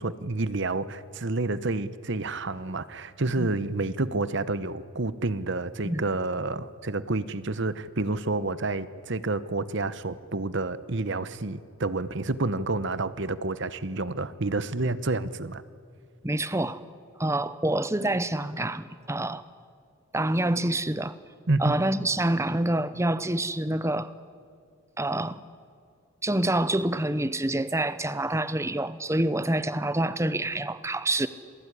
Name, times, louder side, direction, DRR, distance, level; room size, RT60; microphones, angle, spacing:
voice 1, 0.0-15.6 21.5-21.8, right 2 dB, 55° right, 1.1 m, -29 dB
voice 2, 16.2-16.8 17.2-19.4 20.1-21.2 21.6-24.1 25.0-25.4 26.2-31.3, right 1 dB, 15° right, 0.9 m, -27 dB
27.5 x 20.5 x 9.9 m
head